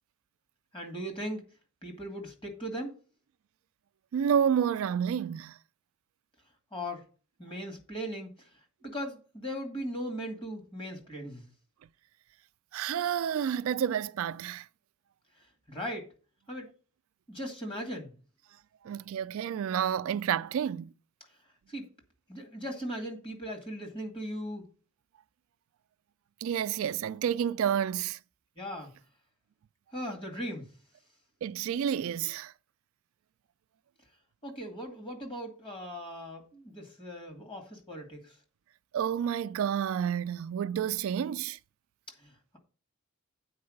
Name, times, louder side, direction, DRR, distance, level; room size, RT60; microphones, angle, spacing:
voice 1, 0.7-1.4 1.8-2.9 6.7-7.0 7.4-8.5 8.8-11.5 15.7-16.1 16.5-16.7 17.3-18.1 21.7-21.9 22.3-24.7 28.6-28.9 29.9-30.7 34.4-38.3 42.2-42.6, equal, 25° left, 2.3 m, -38 dB
voice 2, 4.1-5.6 12.7-14.7 18.8-20.9 26.4-28.2 31.4-32.5 38.9-41.6, right 8 dB, 70° right, 0.3 m, -29 dB
8.6 x 4.7 x 6.4 m
head